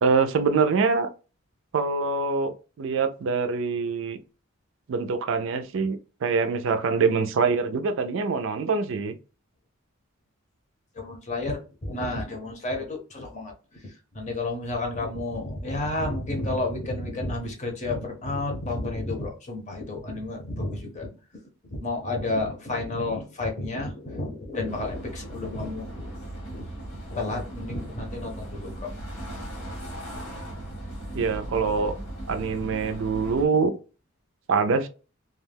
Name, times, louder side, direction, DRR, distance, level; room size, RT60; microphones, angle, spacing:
voice 1, 0.0-1.1 1.7-4.2 4.9-9.2 31.1-31.9 32.3-33.7 34.5-34.9, right 4 dB, 65° right, 0.4 m, -24 dB
voice 2, 11.0-21.1 21.7-26.7 27.1-28.9 31.1-31.2, left 2 dB, 35° left, 0.7 m, -31 dB
sound 1, 24.7-33.5, right 1 dB, 75° left, 1.2 m, -38 dB
2.3 x 2.2 x 3.3 m
head